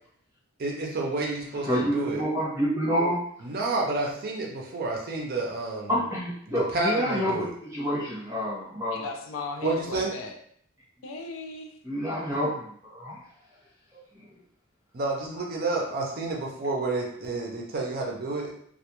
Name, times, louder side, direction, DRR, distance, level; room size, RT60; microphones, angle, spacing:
voice 1, 0.6-2.2 3.4-5.9 6.5-7.5 9.6-10.1 14.9-18.5, right 3 dB, 45° right, -1 dB, 0.5 m, -29 dB
voice 2, 1.7-3.2 5.9-9.0 11.8-13.2 13.9-14.0, equal, 15° right, -6 dB, 0.9 m, -28 dB
voice 3, 8.9-10.4 11.0-11.7, left 3 dB, 65° left, 4 dB, 0.4 m, -37 dB
2.2 x 2.2 x 2.9 m, 0.64 s
head